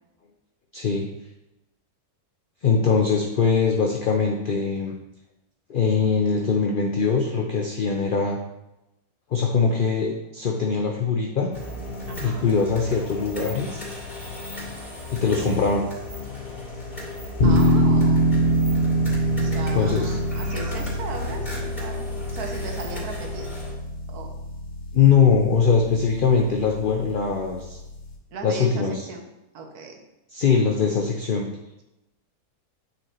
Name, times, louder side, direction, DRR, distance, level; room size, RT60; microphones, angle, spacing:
voice 1, 0.7-1.1 2.6-4.9 5.7-8.4 9.3-11.5 12.2-13.8 15.1-15.8 19.7-20.1 24.9-27.8 28.4-29.0 30.3-31.5, left 5 dB, 55° left, 1 dB, 0.5 m, -22 dB
sound 1, 11.5-23.7, left 3 dB, 25° left, 2.7 m, -36 dB
voice 2, 12.1-12.5 15.4-15.6 17.4-18.2 19.4-22.0 22.3-23.5 24.1-24.4 28.3-29.2 29.5-30.0, right 4 dB, 75° right, 2 dB, 1.4 m, -36 dB
sound 2, 17.4-28.1, right 1 dB, 80° left, 1.5 m, -25 dB
9.1 x 4.3 x 3.0 m, 0.92 s
omnidirectional pair, 1.7 m